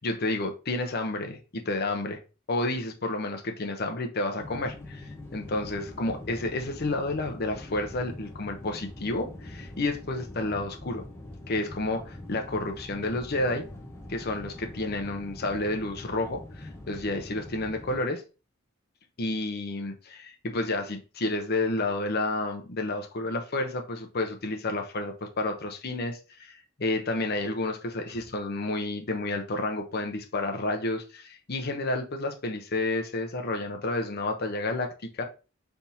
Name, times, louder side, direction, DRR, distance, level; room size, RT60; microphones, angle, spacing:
voice 1, 0.0-2.2 2.5-11.0 11.5-13.7 14.1-18.2 19.2-35.2, left 2 dB, 50° left, 0.8 m, -30 dB
sound 1, 4.4-18.0, left 1 dB, 15° left, 0.8 m, -43 dB
4.2 x 3.5 x 2.7 m
head